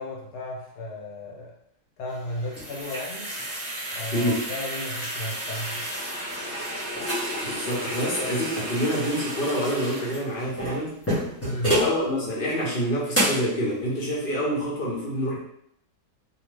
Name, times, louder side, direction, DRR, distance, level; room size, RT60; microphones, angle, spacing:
voice 1, 0.0-1.6 2.0-3.3 3.9-5.8 11.4-11.7, left 1 dB, 85° left, -1 dB, 1.4 m, -34 dB
sound 1, 2.1-12.0 12.5-12.6 13.1-13.5, equal, 10° left, 0.7 m, -30 dB
voice 2, 4.1-4.4 7.4-11.0 11.7-15.4, equal, 45° left, -4 dB, 0.8 m, -27 dB
2.7 x 2.3 x 3.3 m, 0.71 s
omnidirectional pair, 1.7 m